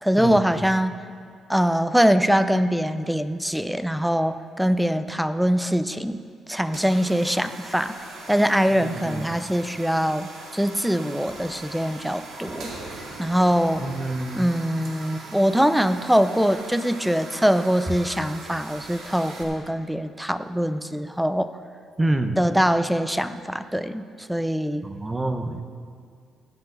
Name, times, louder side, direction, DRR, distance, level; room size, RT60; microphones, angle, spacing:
voice 1, 0.0-1.0 1.5-6.2 6.5-7.9 8.3-12.7 13.2-13.9 14.3-21.5 22.4-24.9, equal, 5° right, 12 dB, 0.5 m, -23 dB
sound 1, 6.6-19.4, right 2 dB, 75° right, 2.0 m, -40 dB
voice 2, 13.8-14.4 22.0-22.4 24.8-25.6, right 2 dB, 20° right, 8 dB, 0.9 m, -26 dB
16.5 x 9.8 x 4.0 m, 2.2 s
cardioid pair, 90°, 0 cm